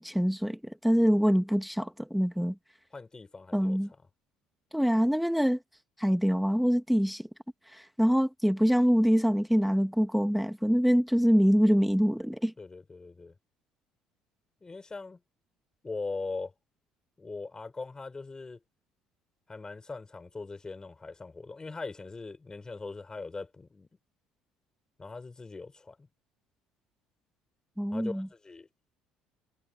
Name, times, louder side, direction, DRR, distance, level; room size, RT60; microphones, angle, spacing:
voice 1, 0.0-2.5 3.5-3.9 4.7-5.6 6.0-7.2 7.7-12.5 27.8-28.3, equal, ahead, 1.8 m, -25 dB
voice 2, 2.9-3.8 12.6-13.3 14.6-15.2 15.8-16.5 17.2-18.6 19.5-23.9 25.0-26.1 27.9-28.7, left 3 dB, 20° left, 6.7 m, -40 dB
supercardioid pair, 75°, 3 cm